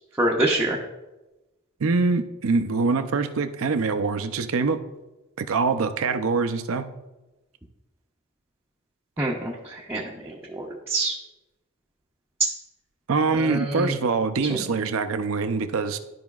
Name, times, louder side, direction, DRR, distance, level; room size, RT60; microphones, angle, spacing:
voice 1, 0.2-0.8 9.2-11.1 13.4-13.9 14.5-14.6, right 1 dB, 10° right, -3 dB, 0.6 m, -26 dB
voice 2, 1.8-4.8 5.4-6.9 13.1-16.0, right 4 dB, 75° right, 9 dB, 0.5 m, -24 dB
12.5 x 5.0 x 2.4 m, 1.0 s
head